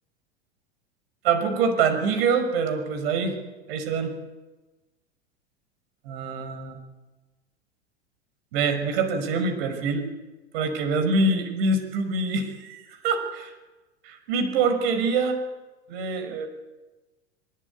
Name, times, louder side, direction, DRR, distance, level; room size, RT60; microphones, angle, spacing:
voice 1, 1.2-3.4 3.7-4.1 6.1-6.8 8.5-10.0 10.5-13.5 14.0-15.4 15.9-16.5, right 4 dB, 55° right, 7 dB, 5.8 m, -25 dB
23.0 x 21.0 x 9.3 m, 1.2 s
figure-of-eight pair, 85°, 34 cm